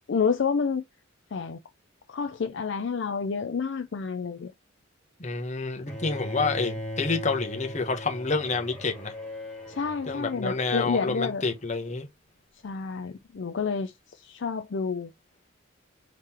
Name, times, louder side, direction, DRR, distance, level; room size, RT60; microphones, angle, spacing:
voice 1, 0.1-0.8 1.3-1.6 2.1-4.5 9.7-11.4 12.6-13.9 14.2-15.1, left 5 dB, 55° left, 0.4 m, -29 dB
voice 2, 5.2-9.1 10.1-12.1, left 4 dB, 35° left, 0.9 m, -28 dB
Bowed string instrument, 5.9-11.9, left 1 dB, 5° left, 2.0 m, -39 dB
3.7 x 3.1 x 4.2 m
head